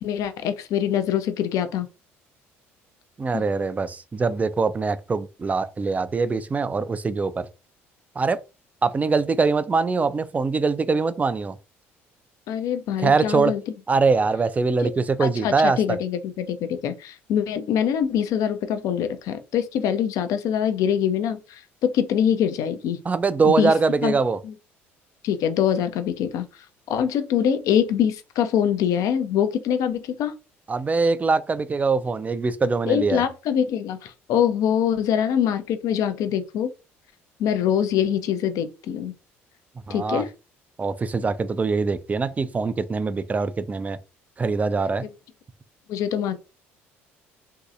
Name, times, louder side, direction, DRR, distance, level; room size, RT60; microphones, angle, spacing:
voice 1, 0.0-1.9 3.3-3.4 12.5-13.6 14.8-14.9 15.2-23.0 23.4-23.7 24.0-24.1 24.4-24.5 25.2-26.5 26.9-30.3 32.9-36.7 37.4-39.1 39.9-40.3 45.0-45.1 45.9-46.4, left 9 dB, 55° left, 0.5 m, -24 dB
voice 2, 3.2-7.5 8.2-8.4 8.8-11.6 13.0-13.5 13.9-16.0 23.1-24.4 30.7-33.2 39.9-40.2 40.8-44.0 44.4-45.1, right 4 dB, 20° right, 0.3 m, -23 dB
3.0 x 2.7 x 2.4 m
figure-of-eight pair, 55°, 7 cm